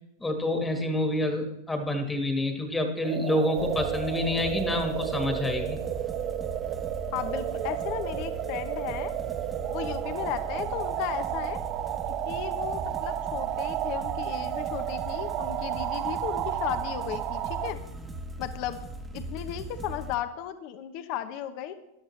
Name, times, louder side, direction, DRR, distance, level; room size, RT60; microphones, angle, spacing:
voice 1, 0.2-5.8, left 1 dB, 10° left, 4 dB, 1.5 m, -28 dB
sound 1, 3.0-17.7, right 14 dB, 40° right, 0.4 m, -32 dB
sound 2, 3.6-20.2, right 1 dB, 10° right, 1.2 m, -39 dB
voice 2, 7.1-9.1 9.7-11.6 12.3-17.8 18.4-18.8 19.1-21.7, left 11 dB, 50° left, 10 dB, 0.8 m, -35 dB
14.0 x 10.5 x 3.2 m, 0.91 s
hypercardioid pair, 115°, 0 cm